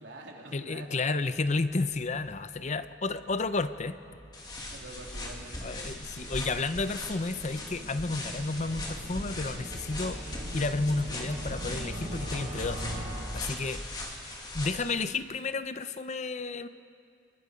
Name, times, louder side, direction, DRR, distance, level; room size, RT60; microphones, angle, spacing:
voice 1, 0.0-1.0 4.7-5.8, right 2 dB, 80° right, 0 dB, 3.2 m, -46 dB
voice 2, 0.5-4.0 5.6-10.2 10.5-12.8 13.3-13.8 14.5-16.7, left 3 dB, 40° left, 12 dB, 0.7 m, -31 dB
sound 1, 1.8-14.2, equal, 55° right, 4.6 m, -43 dB
sound 2, 4.3-15.0, left 1 dB, 25° left, 2.6 m, -39 dB
29.0 x 21.0 x 5.2 m, 2.4 s
head